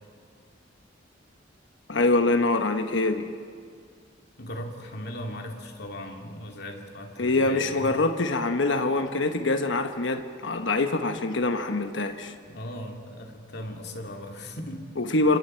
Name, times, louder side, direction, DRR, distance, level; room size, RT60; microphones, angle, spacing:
voice 1, 1.9-3.3 7.2-12.3 15.0-15.4, left 2 dB, 75° left, 7 dB, 1.1 m, -24 dB
voice 2, 4.4-8.0 12.5-14.8, left 1 dB, 60° left, 2 dB, 2.6 m, -38 dB
29.0 x 26.5 x 4.5 m, 2.1 s
head